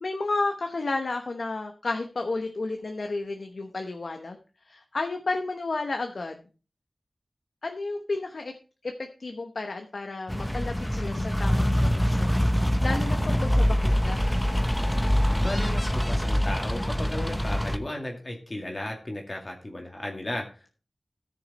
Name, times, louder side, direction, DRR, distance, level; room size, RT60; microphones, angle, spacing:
voice 1, 0.0-4.4 4.6-6.4 7.6-8.5 8.8-8.9 9.2-14.3, left 3 dB, 75° left, 5 dB, 1.0 m, -32 dB
sound 1, 10.3-17.8, equal, 10° left, 1.0 m, -24 dB
voice 2, 15.4-20.7, left 1 dB, 35° left, 1 dB, 2.2 m, -35 dB
14.0 x 6.5 x 4.2 m, 0.35 s
wide cardioid pair, 60°, 0 cm